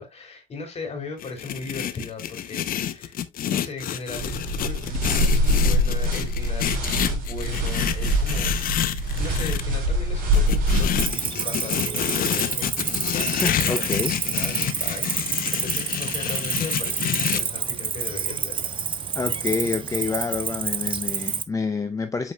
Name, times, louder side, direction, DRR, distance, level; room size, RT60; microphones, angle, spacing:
voice 1, 0.0-8.6 9.2-13.9 14.2-18.7, left 3 dB, 40° left, 3.4 m, -37 dB
sound 1, 1.2-9.6 10.3-17.4, left 11 dB, 60° left, 0.8 m, -28 dB
sound 2, 4.1-11.1, equal, 55° right, 4.0 m, -24 dB
Cricket, 11.0-21.4, right 6 dB, 30° right, 0.7 m, -28 dB
voice 2, 13.4-14.1 19.2-22.3, left 4 dB, 20° left, 0.5 m, -27 dB
8.0 x 5.1 x 2.3 m
cardioid pair, 110°, 17 cm